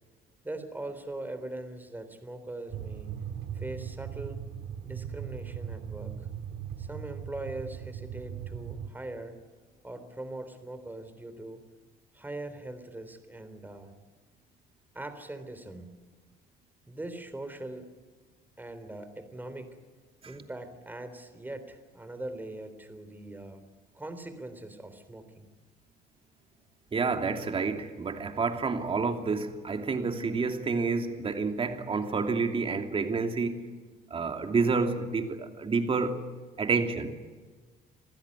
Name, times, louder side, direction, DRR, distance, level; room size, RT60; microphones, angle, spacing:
voice 1, 0.4-3.2 3.5-4.4 4.8-6.3 6.8-9.4 9.8-11.6 12.1-13.9 14.9-15.9 16.9-17.9 18.6-19.8 20.3-23.6 23.9-25.5, right 2 dB, 10° right, 9 dB, 3.7 m, -41 dB
sound 1, 2.7-8.9, right 8 dB, 80° right, 2.1 m, -39 dB
voice 2, 26.9-33.6 34.1-36.2 36.6-37.1, right 4 dB, 35° right, 5 dB, 2.9 m, -29 dB
26.5 x 15.5 x 9.8 m, 1.4 s
cardioid pair, 110°, 17 cm